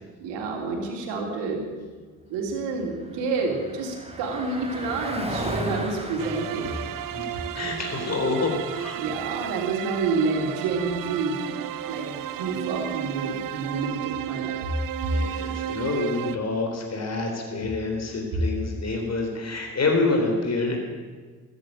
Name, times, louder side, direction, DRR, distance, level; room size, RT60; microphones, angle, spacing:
voice 1, 0.2-1.7 2.3-6.8 9.0-11.4 11.9-14.6, right 4 dB, 70° right, 1 dB, 3.3 m, -29 dB
Car passing by, 2.3-14.1, equal, 15° right, 3.3 m, -38 dB
sound 1, 6.2-16.4, right 12 dB, 50° right, 0.7 m, -33 dB
voice 2, 7.1-9.0 15.1-20.8, left 3 dB, 35° left, 2 dB, 3.9 m, -27 dB
13.0 x 10.5 x 8.9 m, 1.4 s
hypercardioid pair, 50°, 44 cm